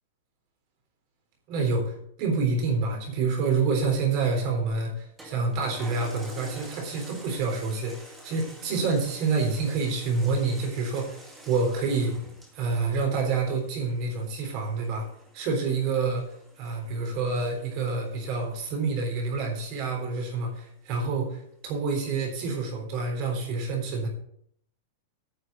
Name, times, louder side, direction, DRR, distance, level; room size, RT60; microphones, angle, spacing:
voice 1, 1.5-12.2 12.5-15.1 15.3-24.1, right 4 dB, 40° right, 2 dB, 3.7 m, -28 dB
Toilet flush, 5.2-20.0 20.5-20.6, right 1 dB, 10° right, 2.0 m, -49 dB
9.7 x 5.8 x 7.9 m, 0.67 s
supercardioid pair, 170°, 0 cm